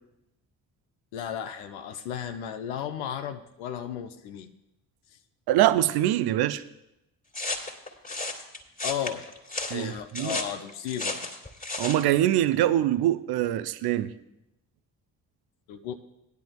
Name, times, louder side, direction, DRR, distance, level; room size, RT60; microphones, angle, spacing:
voice 1, 1.1-4.5 8.8-9.2 9.7-11.3 15.7-15.9, left 9 dB, 70° left, 0.7 m, -34 dB
voice 2, 5.5-6.6 9.7-10.4 11.8-14.1, right 13 dB, 50° right, 0.7 m, -24 dB
sound 1, 7.3-12.1, left 2 dB, 15° left, 2.0 m, -34 dB
18.0 x 10.5 x 2.3 m
figure-of-eight pair, 40°, 50 cm